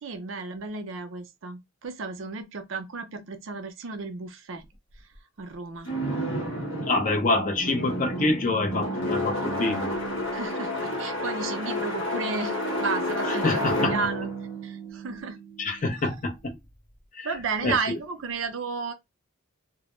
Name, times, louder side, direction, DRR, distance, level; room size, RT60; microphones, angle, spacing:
voice 1, 0.0-4.7 5.4-5.9 10.3-14.3 14.6-15.4 17.2-18.9, right 4 dB, 60° right, 0.5 m, -33 dB
sound 1, 5.8-15.8, equal, 60° left, 1.0 m, -30 dB
voice 2, 6.9-10.0 13.2-13.9 15.6-16.6 17.1-17.3 17.6-18.0, left 2 dB, 40° left, 0.5 m, -26 dB
2.1 x 2.0 x 3.0 m
head